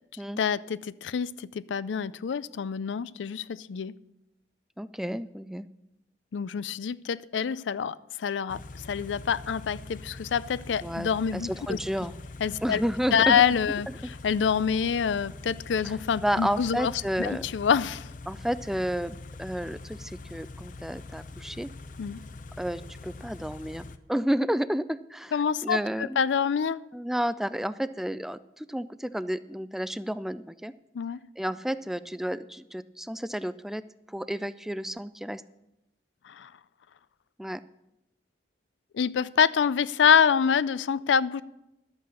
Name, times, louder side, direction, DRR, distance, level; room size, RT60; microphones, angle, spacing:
voice 1, 0.4-3.9 6.3-11.8 12.4-12.8 13.1-16.9 17.2-18.1 22.0-22.2 25.3-26.8 30.9-31.2 36.2-36.5 38.9-41.4, left 7 dB, 90° left, 17 dB, 0.4 m, -26 dB
voice 2, 4.8-5.7 10.8-12.1 12.6-13.4 14.0-14.1 16.2-17.4 18.3-21.7 22.6-25.3 25.6-26.2 26.9-30.7 31.4-33.8 34.1-35.4 37.4-37.6, equal, ahead, 14 dB, 0.3 m, -31 dB
Car / Idling, 8.5-24.0, left 3 dB, 45° left, 0.6 m, -43 dB
12.0 x 8.3 x 6.3 m, 0.90 s
head